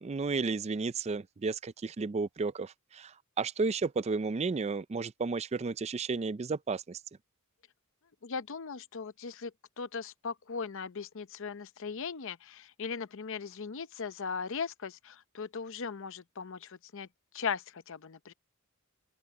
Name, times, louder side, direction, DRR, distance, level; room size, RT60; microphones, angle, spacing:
voice 1, 0.0-3.1 3.4-7.0, right 4 dB, 30° right, 0.4 m, -32 dB
voice 2, 8.2-9.5 9.8-17.1 17.3-18.3, left 5 dB, 65° left, 0.7 m, -38 dB
open air
head